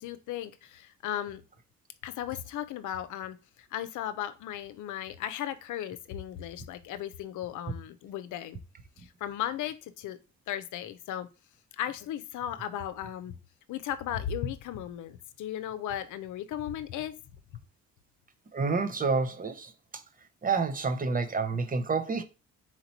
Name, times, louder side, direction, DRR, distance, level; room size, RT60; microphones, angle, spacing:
voice 1, 0.0-1.4 2.0-8.6 9.0-10.2 10.5-11.3 11.7-13.3 13.7-17.2, left 11 dB, 80° left, 0.6 m, -36 dB
voice 2, 18.5-20.0 20.4-22.2, right 4 dB, 30° right, 0.7 m, -29 dB
4.4 x 2.9 x 4.0 m
cardioid pair, 90°, 30 cm